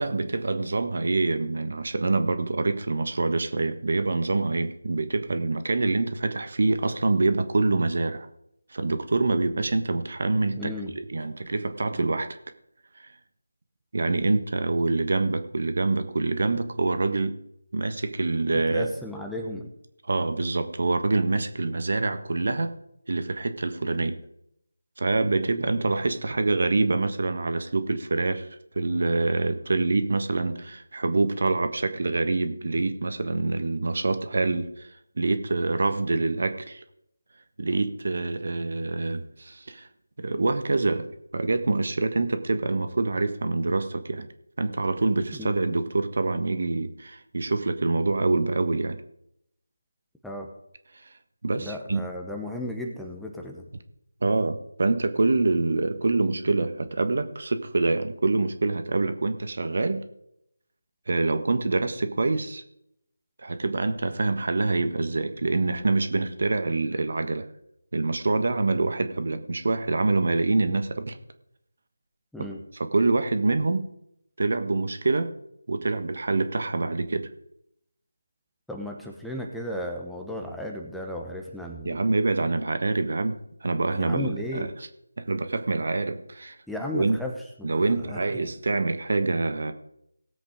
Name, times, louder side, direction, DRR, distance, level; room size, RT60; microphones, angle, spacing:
voice 1, 0.0-8.3 8.7-12.4 12.9-13.1 13.9-17.3 17.7-18.9 20.1-22.8 23.1-24.2 25.0-28.5 28.7-34.9 35.2-36.8 37.6-39.9 40.2-41.1 41.3-44.3 44.6-49.0 51.4-52.0 54.2-60.0 61.1-62.6 63.4-67.5 67.9-71.2 72.8-73.8 74.4-75.3 75.7-77.3 81.8-84.7 85.2-86.6 86.9-87.2 87.6-89.7, right 3 dB, 55° right, 9 dB, 1.4 m, -25 dB
voice 2, 10.5-10.9 18.5-19.7 45.3-45.6 50.2-50.5 51.5-53.6 72.3-72.6 78.7-82.0 84.0-84.7 86.7-88.5, left 1 dB, ahead, 0 dB, 1.1 m, -35 dB
18.0 x 8.0 x 5.1 m, 0.76 s
figure-of-eight pair, 160°, 0 cm